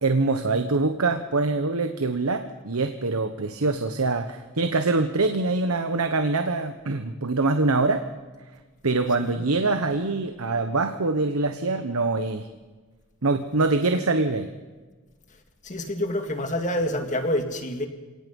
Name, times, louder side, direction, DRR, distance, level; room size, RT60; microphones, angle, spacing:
voice 1, 0.0-8.0 8.8-12.5 13.2-14.5, right 3 dB, 85° right, 8 dB, 1.2 m, -24 dB
voice 2, 15.6-17.9, left 1 dB, 35° left, 5 dB, 2.1 m, -27 dB
28.5 x 18.0 x 5.4 m, 1.3 s
head